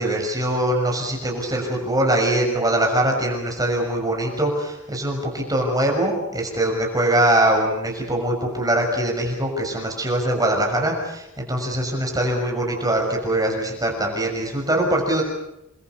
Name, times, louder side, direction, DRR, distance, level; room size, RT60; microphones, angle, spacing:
voice 1, 0.0-15.2, right 1 dB, 20° right, 1 dB, 6.5 m, -22 dB
30.0 x 23.0 x 6.8 m, 0.85 s
head